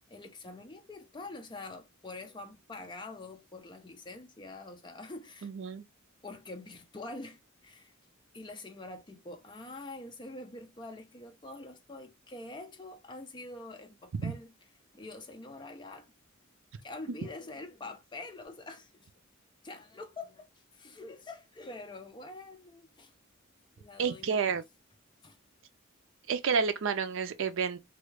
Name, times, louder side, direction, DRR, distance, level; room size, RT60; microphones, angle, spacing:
voice 1, 0.1-5.5 6.2-7.9 8.3-14.5 14.9-16.1 16.8-19.1 19.6-20.5 20.7-23.1 23.8-24.6 25.2-25.4, left 2 dB, 20° left, 0.6 m, -45 dB
voice 2, 5.4-5.8 14.2-14.3 24.0-24.6 26.3-27.8, right 6 dB, 65° right, 0.5 m, -30 dB
3.1 x 2.3 x 3.1 m
head